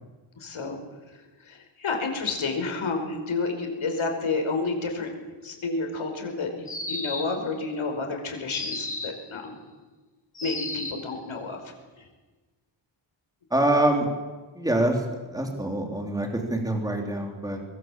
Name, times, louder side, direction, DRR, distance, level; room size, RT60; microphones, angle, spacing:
voice 1, 0.4-0.8 1.5-5.1 5.4-9.6 10.4-11.6, left 3 dB, 80° left, 4 dB, 5.1 m, -30 dB
sound 1, 6.7-7.5 8.5-9.3 10.4-11.1, left 2 dB, 15° left, 3.0 m, -33 dB
voice 2, 13.5-14.1 14.6-17.6, right 1 dB, 10° right, 2 dB, 3.4 m, -25 dB
24.5 x 21.5 x 7.6 m, 1.3 s
wide cardioid pair, 155°, 47 cm